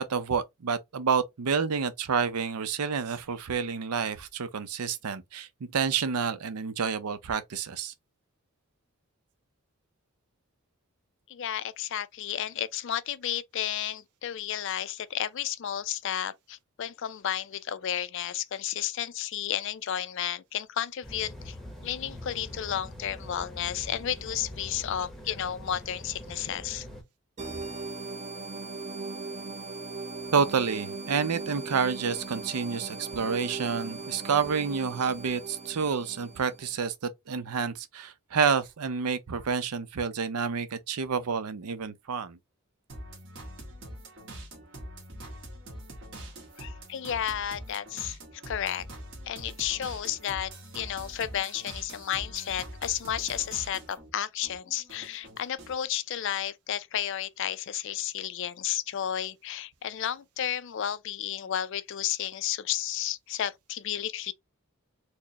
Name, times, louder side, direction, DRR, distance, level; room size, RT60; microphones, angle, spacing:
voice 1, 0.0-7.9 30.3-42.4, right 6 dB, 85° right, 0.6 m, -29 dB
voice 2, 11.3-21.6 21.8-26.9 46.6-48.2 48.5-48.8 49.3-64.3, left 10 dB, 55° left, 0.4 m, -32 dB
sound 1, 21.0-27.0, left 1 dB, ahead, 0.8 m, -43 dB
sound 2, 27.4-36.7, right 3 dB, 30° right, 0.6 m, -39 dB
sound 3, 42.9-54.1 54.4-55.8, right 1 dB, 55° right, 1.4 m, -44 dB
4.4 x 2.1 x 2.8 m
head